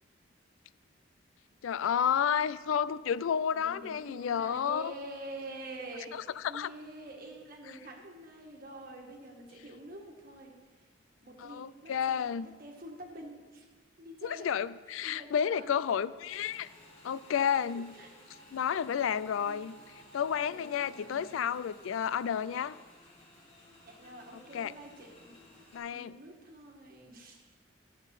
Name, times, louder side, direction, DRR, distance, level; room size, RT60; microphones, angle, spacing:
voice 1, 1.6-4.9 6.1-6.7 11.4-12.5 14.2-16.7 17.0-17.9 18.5-19.8 20.1-22.7 24.5-24.7 25.7-26.2, left 8 dB, 90° left, 17 dB, 0.3 m, -31 dB
voice 2, 3.5-10.5 11.2-12.3 12.6-13.7 14.0-14.5 15.0-15.8 17.5-18.4 19.4-19.7 20.5-21.4 22.5-22.7 23.8-25.4 25.9-27.4, right 1 dB, 50° right, 1 dB, 1.6 m, -47 dB
Motorcycle / Engine, 16.3-25.8, left 1 dB, 30° left, 2.6 m, -56 dB
10.0 x 7.3 x 5.4 m, 1.4 s
head